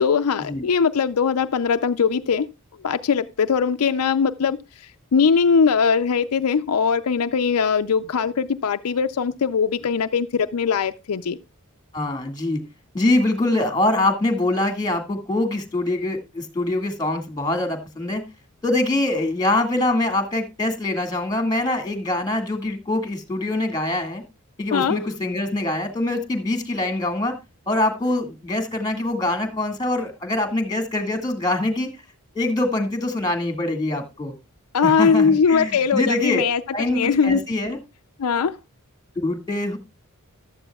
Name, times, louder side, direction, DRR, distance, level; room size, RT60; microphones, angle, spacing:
voice 1, 0.0-2.5 2.8-4.6 5.1-11.4 24.7-25.1 34.7-36.6 36.9-37.4 38.2-38.5, left 6 dB, 80° left, 0.5 m, -20 dB
voice 2, 11.9-12.6 12.9-18.2 18.6-24.2 24.6-27.4 27.7-31.9 32.3-34.3 34.8-36.4 36.7-37.8 39.2-39.8, left 2 dB, 20° left, 2.0 m, -24 dB
15.0 x 12.0 x 2.3 m
head